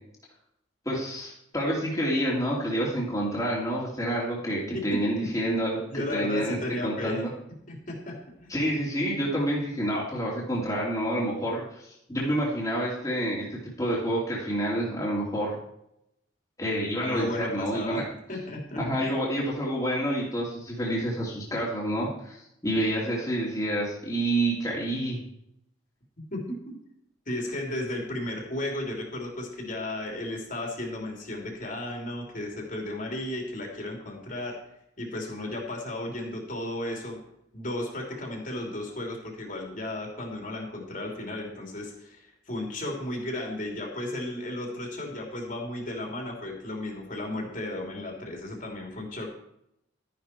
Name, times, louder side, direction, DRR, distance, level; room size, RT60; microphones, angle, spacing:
voice 1, 0.9-7.3 8.5-15.5 16.6-18.0 18.8-25.2, right 1 dB, 15° left, -6 dB, 2.7 m, -28 dB
voice 2, 5.9-7.2 7.7-8.5 17.0-18.0 18.3-19.2 26.3-26.4 27.3-34.6 35.0-37.2 37.5-49.3, left 1 dB, 40° left, 0 dB, 3.2 m, -34 dB
13.0 x 10.5 x 4.5 m, 0.77 s
head